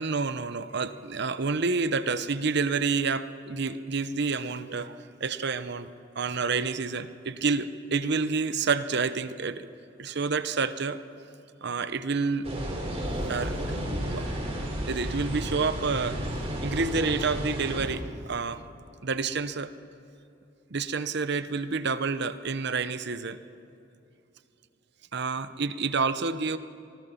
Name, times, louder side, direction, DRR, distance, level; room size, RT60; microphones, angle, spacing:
voice 1, 0.0-5.9 6.2-9.7 10.0-11.0 11.6-12.5 13.3-13.8 14.1-14.3 14.9-16.2 16.6-18.6 19.0-19.7 20.7-23.4 25.1-26.6, right 4 dB, 60° right, 12 dB, 0.8 m, -29 dB
sound 1, 12.4-17.9, equal, 35° right, 4.3 m, -32 dB
25.5 x 19.5 x 5.7 m, 2.8 s
head